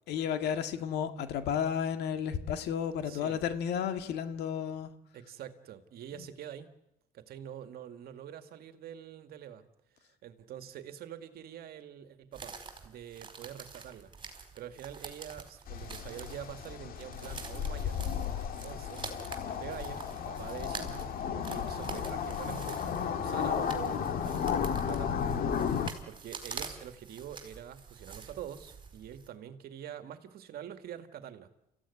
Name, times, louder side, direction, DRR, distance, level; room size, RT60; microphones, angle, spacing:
voice 1, 0.1-4.9, left 8 dB, 80° left, 1.9 m, -32 dB
voice 2, 3.0-3.4 5.1-6.7 7.1-9.7 10.0-12.6 12.8-18.0 18.6-19.1 19.6-25.1 25.7-31.5, right 10 dB, 65° right, 2.1 m, -45 dB
sound 1, 12.3-29.3, right 5 dB, 30° right, 4.5 m, -46 dB
sound 2, 15.7-25.9, left 8 dB, 60° left, 2.0 m, -34 dB
28.5 x 15.5 x 9.8 m
cardioid pair, 110°, 17 cm